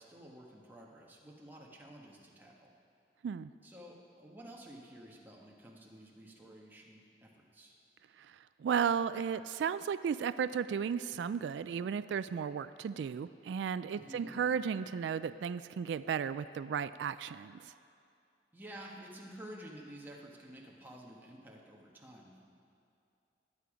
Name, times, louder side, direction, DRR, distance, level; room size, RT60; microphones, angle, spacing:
voice 1, 0.0-2.7 3.6-7.8 13.9-14.3 18.5-22.4, right 1 dB, 10° right, -2 dB, 1.4 m, -51 dB
voice 2, 8.2-17.7, right 7 dB, 85° right, 14 dB, 0.3 m, -34 dB
20.5 x 8.4 x 5.0 m, 2.5 s
head